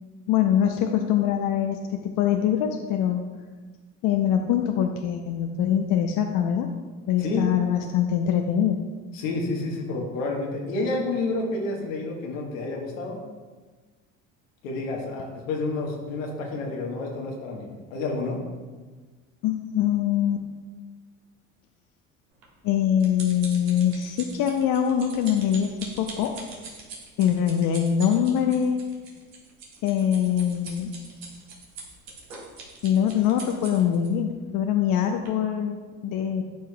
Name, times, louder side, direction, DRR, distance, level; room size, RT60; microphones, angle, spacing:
voice 1, 0.3-3.2 4.0-6.7 7.1-8.8 19.4-20.4 22.6-25.7 26.0-26.3 27.2-28.8 29.8-30.9 32.8-35.8 36.0-36.4, left 9 dB, 55° left, 5 dB, 0.6 m, -23 dB
voice 2, 9.1-13.2 14.6-18.4, left 3 dB, 80° left, 0 dB, 1.4 m, -29 dB
sound 1, 22.4-34.1 34.7-34.9 35.3-35.4, right 3 dB, 80° right, 1.7 m, -42 dB
11.5 x 4.7 x 2.3 m, 1.4 s
hypercardioid pair, 65°, 38 cm